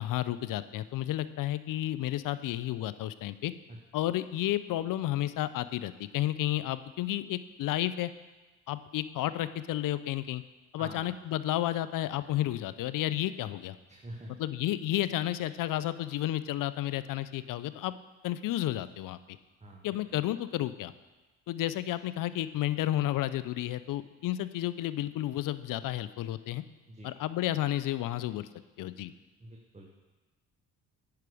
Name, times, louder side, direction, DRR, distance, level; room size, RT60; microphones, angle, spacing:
voice 1, 0.0-3.5 3.9-8.1 8.7-10.4 10.7-13.8 14.4-17.9 18.2-19.2 19.8-20.9 21.5-26.6 27.0-28.5 28.8-29.1, left 14 dB, 60° left, 14 dB, 0.5 m, -32 dB
voice 2, 13.9-14.4 19.6-19.8 26.9-27.1 29.4-29.9, right 1 dB, 20° right, 0 dB, 1.3 m, -45 dB
9.2 x 5.8 x 4.9 m, 1.2 s
supercardioid pair, 60°, 37 cm